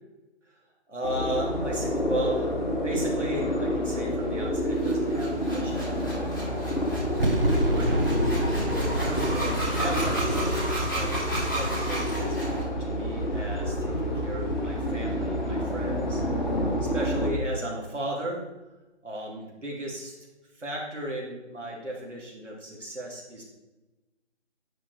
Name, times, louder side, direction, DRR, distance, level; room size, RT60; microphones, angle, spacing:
voice 1, 0.9-6.4 7.5-8.2 8.9-10.7 10.9-16.2 16.8-18.4 19.0-20.1 20.5-23.6, right 1 dB, 85° right, -2 dB, 3.1 m, -35 dB
sound 1, 1.0-17.3, equal, 40° left, 1.7 m, -28 dB
sound 2, 4.7-12.6, right 1 dB, 20° left, 2.6 m, -34 dB
sound 3, 7.2-12.4, right 1 dB, 50° right, 1.2 m, -30 dB
9.9 x 7.3 x 3.5 m, 1.1 s
figure-of-eight pair, 180°, 35 cm